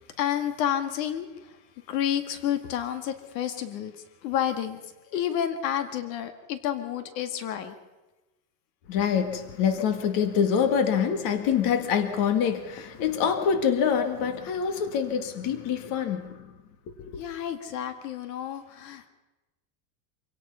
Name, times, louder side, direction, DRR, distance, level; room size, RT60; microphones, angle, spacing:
voice 1, 0.0-1.6 1.9-7.7 8.9-9.0 17.2-19.1, left 10 dB, 75° left, 9 dB, 2.1 m, -30 dB
voice 2, 8.9-16.4 17.0-17.2, left 7 dB, 45° left, 8 dB, 2.1 m, -25 dB
26.0 x 17.5 x 5.6 m, 1.1 s
supercardioid pair, 165°, 49 cm